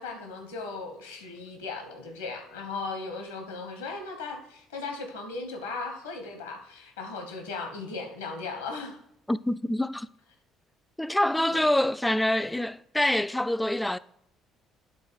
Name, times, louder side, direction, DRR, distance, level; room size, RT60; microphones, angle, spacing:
voice 1, 0.0-9.0 11.5-11.7, left 3 dB, 80° left, 1.2 m, -37 dB
voice 2, 9.3-10.1 11.0-14.0, left 1 dB, 5° left, 0.3 m, -26 dB
9.5 x 4.0 x 4.9 m
figure-of-eight pair, 50°, 0 cm